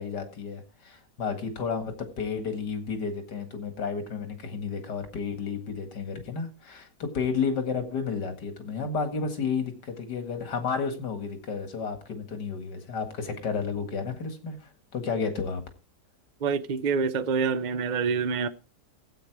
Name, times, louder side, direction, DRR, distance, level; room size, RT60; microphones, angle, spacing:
voice 1, 0.0-15.6, left 5 dB, 80° left, 2.5 m, -32 dB
voice 2, 16.4-18.5, right 5 dB, 80° right, 0.4 m, -26 dB
15.0 x 8.5 x 4.7 m
omnidirectional pair, 1.8 m